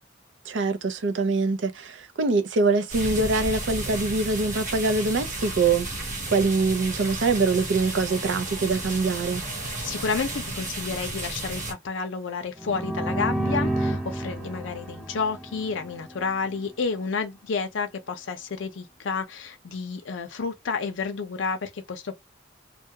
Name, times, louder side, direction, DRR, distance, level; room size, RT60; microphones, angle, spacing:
voice 1, 0.5-9.4, right 3 dB, 75° right, 0.5 m, -24 dB
sound 1, 2.9-11.7, right 2 dB, 40° right, 0.9 m, -33 dB
voice 2, 9.8-22.2, left 5 dB, 90° left, 0.5 m, -30 dB
sound 2, 12.6-16.3, right 1 dB, ahead, 0.4 m, -30 dB
2.3 x 2.1 x 2.7 m
head